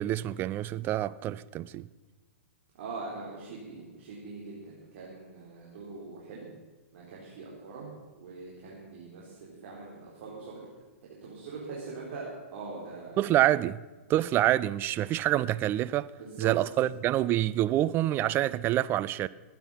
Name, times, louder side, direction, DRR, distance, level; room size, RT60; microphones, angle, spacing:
voice 1, 0.0-1.9 13.2-13.8 14.1-16.1 16.4-19.3, right 13 dB, 30° right, 0.5 m, -27 dB
voice 2, 2.8-6.4 6.9-7.9 8.1-10.6 11.2-13.2 16.2-16.5, right 3 dB, 60° right, 4.2 m, -42 dB
20.0 x 9.3 x 5.7 m
hypercardioid pair, 125°, 8 cm